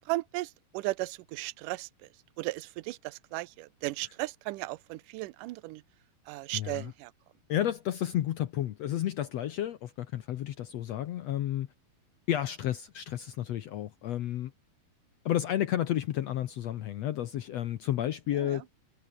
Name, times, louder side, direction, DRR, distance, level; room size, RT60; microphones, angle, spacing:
voice 1, 0.0-2.1 2.4-5.8 6.3-7.1 18.3-18.7, right 20 dB, 75° right, 2.0 m, -36 dB
voice 2, 6.5-6.8 7.5-11.7 12.3-14.5 15.2-18.6, left 12 dB, 75° left, 1.5 m, -31 dB
omnidirectional pair, 4.3 m